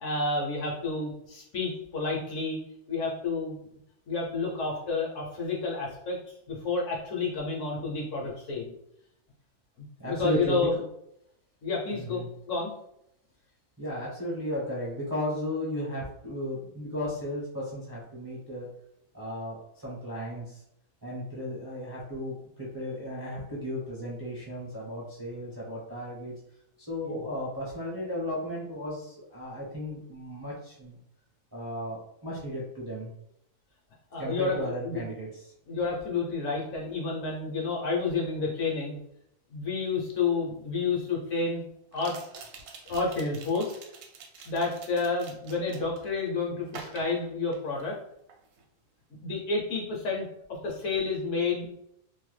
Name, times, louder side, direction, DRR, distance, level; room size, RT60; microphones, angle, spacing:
voice 1, 0.0-2.6 2.9-3.6 4.1-8.7 10.0-10.7 11.6-12.7 27.0-27.2 34.1-34.6 34.8-35.0 35.7-39.0 39.5-41.6 41.9-42.2 42.9-43.8 44.5-48.0 49.2-50.2 50.6-51.7, left 4 dB, 65° left, -2 dB, 0.9 m, -30 dB
voice 2, 10.0-10.7 11.9-12.3 13.8-18.7 19.1-20.6 21.0-26.3 26.8-31.0 31.5-33.1 34.2-35.5, equal, 25° right, -6 dB, 0.5 m, -35 dB
sound 1, 40.2-40.3 41.9-46.1 46.7-48.0 48.3-48.6, right 5 dB, 75° right, 1.0 m, -47 dB
2.7 x 2.2 x 3.1 m, 0.76 s
omnidirectional pair, 1.6 m